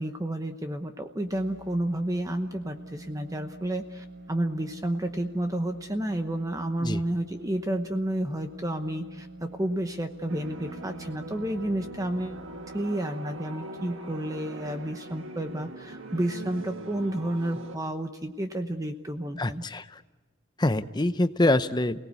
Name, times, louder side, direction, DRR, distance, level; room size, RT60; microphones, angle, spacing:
voice 1, 0.0-12.4 12.7-19.6, right 1 dB, 15° right, 6 dB, 0.9 m, -31 dB
sound 1, 1.1-12.8, right 2 dB, 90° right, 3.3 m, -46 dB
sound 2, 10.3-17.8, right 2 dB, 70° right, 1.5 m, -42 dB
voice 2, 19.4-19.8 20.6-22.0, left 1 dB, 20° left, 11 dB, 0.7 m, -25 dB
28.5 x 18.5 x 8.3 m, 1.3 s
head